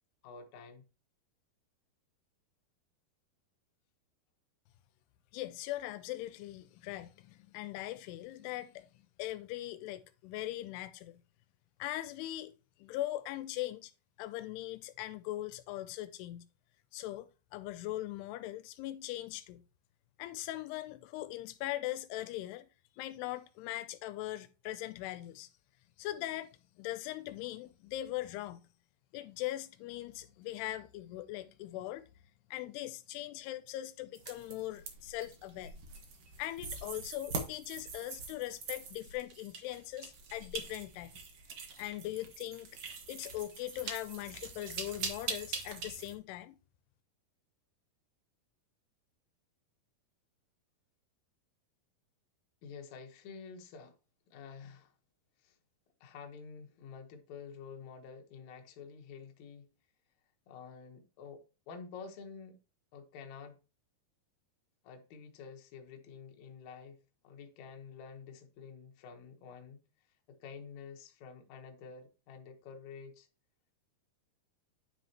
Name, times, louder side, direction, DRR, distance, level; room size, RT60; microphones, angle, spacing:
voice 1, 0.2-0.8 52.6-53.9 54.3-54.9 55.4-55.6 56.0-59.6 60.5-62.6 62.9-63.6 64.8-69.8 70.3-73.3, left 6 dB, 65° left, 1.9 m, -49 dB
voice 2, 5.3-11.2 11.8-12.5 12.8-13.9 14.2-16.5 16.9-17.3 17.5-19.6 20.2-22.7 23.0-25.5 26.0-26.5 26.8-28.6 29.1-32.1 32.5-35.7 36.4-41.1 41.8-42.8 43.1-46.6, left 15 dB, 85° left, 2.6 m, -40 dB
sound 1, 34.1-46.1, right 5 dB, 75° right, 1.3 m, -43 dB
10.0 x 6.1 x 2.9 m
omnidirectional pair, 4.7 m